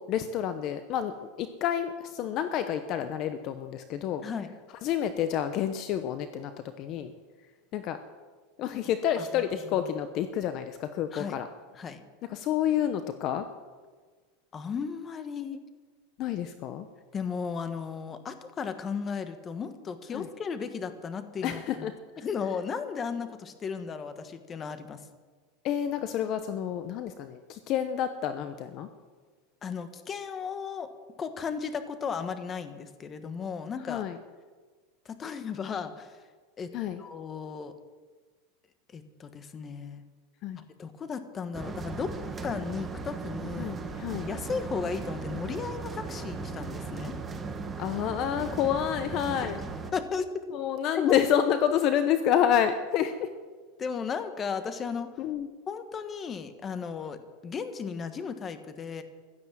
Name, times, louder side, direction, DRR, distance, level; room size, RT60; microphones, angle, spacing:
voice 1, 0.0-4.2 4.8-6.5 6.8-7.1 7.7-8.0 8.6-11.5 12.3-13.5 16.2-16.9 20.1-20.3 21.4-21.9 25.6-28.9 33.9-34.2 36.7-37.0 40.4-40.6 43.6-44.3 47.8-49.6 50.5-53.3 55.2-55.5, left 9 dB, 40° left, 10 dB, 0.9 m, -29 dB
voice 2, 14.5-15.6 17.1-21.9 22.2-25.0 29.6-30.9 31.2-34.0 35.0-36.1 36.6-37.7 38.9-40.0 40.8-42.1 42.4-43.8 44.3-47.2 49.9-50.4 50.9-51.2 53.8-55.1 55.7-59.0, left 6 dB, 25° left, 10 dB, 1.3 m, -35 dB
sound 1, 41.5-49.9, right 4 dB, 15° right, 1.3 m, -37 dB
16.0 x 12.0 x 7.4 m, 1.5 s
supercardioid pair, 145°, 0 cm